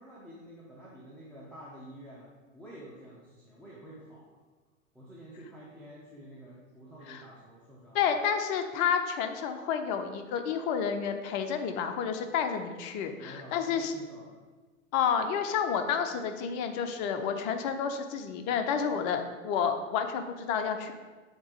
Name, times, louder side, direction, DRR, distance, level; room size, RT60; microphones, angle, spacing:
voice 1, 0.0-4.4 4.9-8.0 13.1-14.4, right 1 dB, 5° left, -7 dB, 1.0 m, -49 dB
voice 2, 7.9-13.9 14.9-20.9, left 7 dB, 35° left, 7 dB, 0.6 m, -30 dB
7.2 x 2.9 x 4.9 m, 1.3 s
figure-of-eight pair, 95°, 40 cm